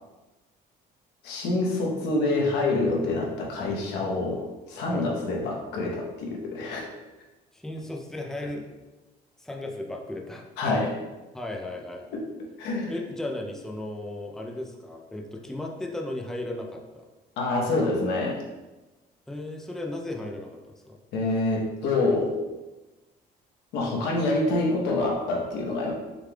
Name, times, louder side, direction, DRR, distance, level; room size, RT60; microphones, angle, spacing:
voice 1, 1.2-4.4 4.7-6.9 10.6-10.9 12.1-12.2 12.6-12.9 17.4-18.4 21.1-22.3 23.7-25.9, left 2 dB, 85° left, -1 dB, 1.1 m, -26 dB
voice 2, 7.5-8.7 9.4-10.5 11.3-12.1 12.8-17.1 19.3-21.0, left 1 dB, 5° left, 1 dB, 0.5 m, -35 dB
6.5 x 3.4 x 2.4 m, 1.1 s
cardioid pair, 110°, 17 cm